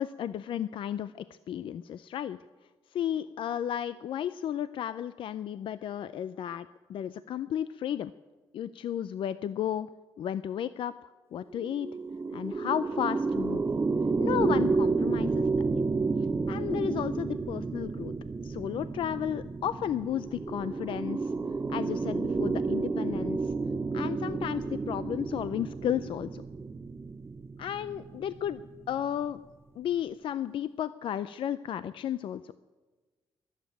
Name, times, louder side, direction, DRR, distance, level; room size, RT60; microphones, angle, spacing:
voice 1, 0.0-2.4 2.9-8.1 8.5-9.9 10.2-11.9 12.3-13.6 14.2-15.5 16.5-18.1 18.4-21.3 21.7-23.5 23.9-26.4 27.6-29.4 29.8-32.5, left 10 dB, 70° left, 14 dB, 0.4 m, -33 dB
sound 1, 11.5-29.0, right 4 dB, 25° right, 0.6 m, -31 dB
21.0 x 7.4 x 9.1 m, 1.3 s
cardioid pair, 90°, 9 cm